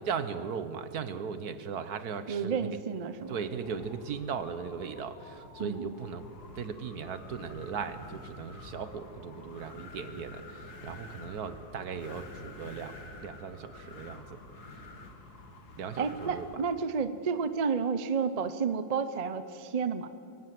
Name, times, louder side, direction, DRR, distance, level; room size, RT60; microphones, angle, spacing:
voice 1, 0.0-2.7 3.3-6.2 6.5-14.4 15.8-16.5, right 6 dB, 70° right, 12 dB, 1.6 m, -38 dB
voice 2, 2.3-3.4 5.6-5.9 16.0-20.1, right 5 dB, 30° right, 11 dB, 0.7 m, -31 dB
Wind, 3.2-16.8, left 2 dB, 70° left, 2.4 m, -48 dB
23.5 x 18.5 x 7.7 m, 2.7 s
omnidirectional pair, 1.7 m